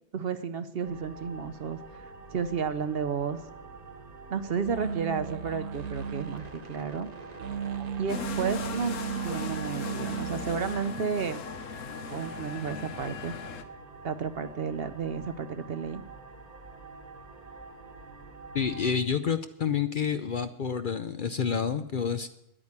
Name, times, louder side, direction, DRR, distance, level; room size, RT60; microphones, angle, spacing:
voice 1, 0.1-2.0 2.3-3.4 4.3-7.1 8.0-9.0 9.2-11.4 12.1-13.3 14.0-16.0, right 6 dB, 55° right, 12 dB, 0.9 m, -32 dB
sound 1, 0.8-19.0, right 3 dB, 35° right, 1.2 m, -46 dB
sound 2, 4.7-6.4 7.4-10.7, right 8 dB, 85° right, 1.1 m, -35 dB
sound 3, 8.1-13.6, left 5 dB, 85° left, 1.3 m, -38 dB
voice 2, 18.5-22.3, left 7 dB, 50° left, 10 dB, 0.7 m, -29 dB
10.0 x 8.7 x 9.7 m, 0.82 s
omnidirectional pair, 1.3 m